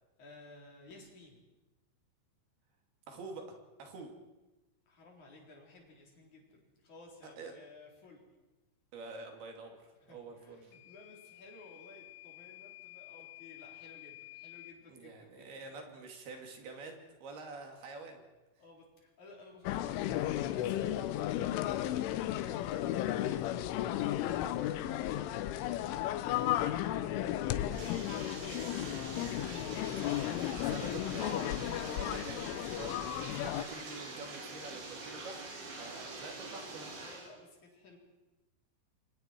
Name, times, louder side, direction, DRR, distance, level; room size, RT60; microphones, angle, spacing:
voice 1, 0.2-1.4 4.9-8.2 10.0-15.9 18.6-25.0 25.8-26.1 27.0-31.0 37.0-38.0, left 2 dB, 40° left, 0 dB, 5.0 m, -56 dB
voice 2, 3.1-4.1 7.2-7.6 8.9-10.7 14.9-18.2 27.5-28.2 30.7-35.4 35.8-36.9, right 3 dB, 55° right, 3 dB, 4.4 m, -47 dB
Microwave oven / Alarm, 10.7-14.8, left 18 dB, 65° left, 2.4 m, -52 dB
sound 1, 19.7-33.6, left 13 dB, 85° left, 3.4 m, -34 dB
Bathtub (filling or washing), 27.5-37.3, right 3 dB, 85° right, 6.9 m, -45 dB
28.5 x 24.5 x 4.6 m, 1.1 s
omnidirectional pair, 5.5 m